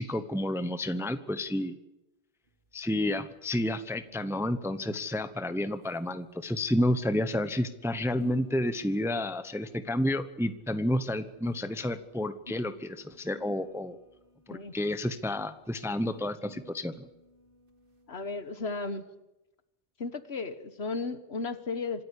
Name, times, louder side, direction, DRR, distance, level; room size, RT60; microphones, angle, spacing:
voice 1, 0.0-1.8 2.7-14.0 14.5-16.9, left 1 dB, 5° right, 11 dB, 0.8 m, -30 dB
sound 1, 2.5-18.5, left 1 dB, 45° right, 2.1 m, -55 dB
voice 2, 18.1-19.1 20.0-22.0, left 3 dB, 60° left, 11 dB, 1.6 m, -35 dB
26.5 x 13.0 x 9.9 m, 0.98 s
omnidirectional pair, 1.2 m